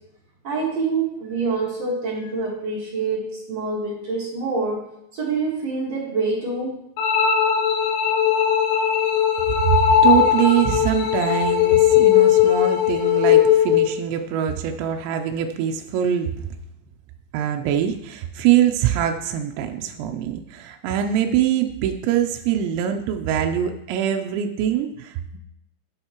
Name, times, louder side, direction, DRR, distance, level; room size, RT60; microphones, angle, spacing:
voice 1, 0.4-4.9 5.1-6.7, right 4 dB, 65° right, -4 dB, 1.6 m, -26 dB
sound 1, 7.0-14.0, left 9 dB, 90° left, 3.3 m, -18 dB
voice 2, 9.6-16.5 17.3-25.4, right 10 dB, 85° right, 4 dB, 2.6 m, -23 dB
12.0 x 7.2 x 3.0 m, 0.81 s
omnidirectional pair, 5.7 m